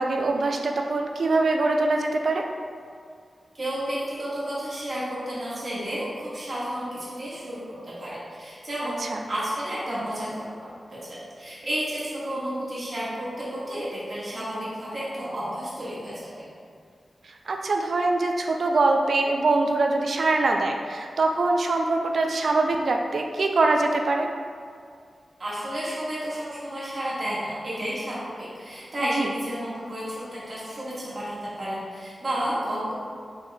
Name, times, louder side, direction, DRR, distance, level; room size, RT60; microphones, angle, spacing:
voice 1, 0.0-2.5 9.1-9.2 17.5-24.3 29.0-29.3, right 3 dB, 70° right, 2 dB, 0.3 m, -23 dB
voice 2, 3.6-7.6 7.8-9.0 9.3-16.5 25.4-32.9, equal, 50° right, -9 dB, 1.5 m, -31 dB
4.2 x 3.7 x 2.2 m, 2.2 s
wide cardioid pair, 70°, 0 cm